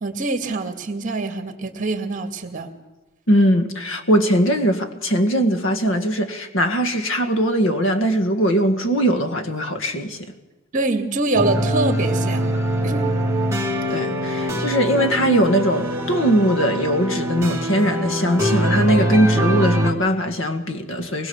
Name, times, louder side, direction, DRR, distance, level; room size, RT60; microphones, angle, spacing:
voice 1, 0.0-2.7 10.7-12.6 12.8-13.1, right 2 dB, 40° right, 2.2 m, -24 dB
voice 2, 3.3-10.3 13.9-21.3, equal, 65° left, 1.9 m, -20 dB
sound 1, 11.3-19.9, equal, 15° right, 2.1 m, -23 dB
23.5 x 20.5 x 7.2 m
head